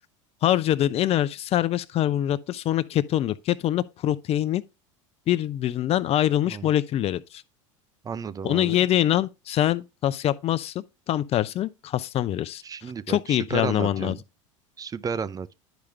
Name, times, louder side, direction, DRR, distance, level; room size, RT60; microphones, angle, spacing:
voice 1, 0.4-4.6 5.3-7.4 8.4-12.6 13.1-14.2, left 12 dB, 40° left, 0.6 m, -24 dB
voice 2, 8.0-8.8 12.6-14.2 14.8-15.5, right 6 dB, 20° right, 0.5 m, -32 dB
10.5 x 5.0 x 3.3 m
hypercardioid pair, 95°, 16 cm